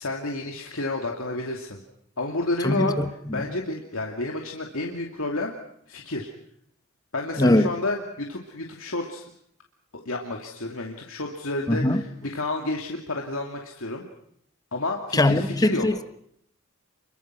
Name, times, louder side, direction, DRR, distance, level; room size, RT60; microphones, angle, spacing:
voice 1, 0.0-1.8 2.2-3.0 3.3-5.6 5.9-6.3 7.1-9.2 10.1-14.0 14.7-15.9, left 2 dB, 70° left, 2.6 m, -30 dB
voice 2, 2.6-3.5 7.4-7.7 11.7-12.0 15.1-16.0, left 1 dB, 20° left, 1.2 m, -21 dB
29.5 x 23.0 x 6.2 m
head